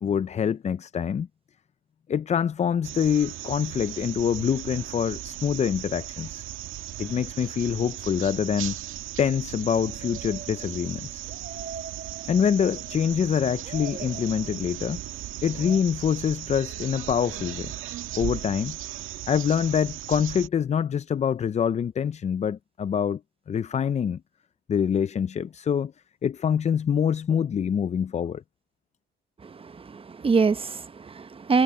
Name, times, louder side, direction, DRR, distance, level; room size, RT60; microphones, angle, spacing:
voice 1, 0.0-1.3 2.1-6.5 7.0-8.8 9.2-11.2 12.3-15.0 15.4-17.7 18.2-18.8 19.3-23.2 23.5-24.2 24.7-25.9 26.2-28.4, left 8 dB, 35° left, 0.4 m, -25 dB
sound 1, 2.8-20.5, right 13 dB, 90° right, 1.9 m, -37 dB
sound 2, 9.6-13.2 13.6-14.9 15.5-15.8, right 5 dB, 50° right, 3.2 m, -43 dB
voice 2, 29.4-31.6, right 4 dB, 30° right, 0.8 m, -25 dB
cardioid pair, 90°, 20 cm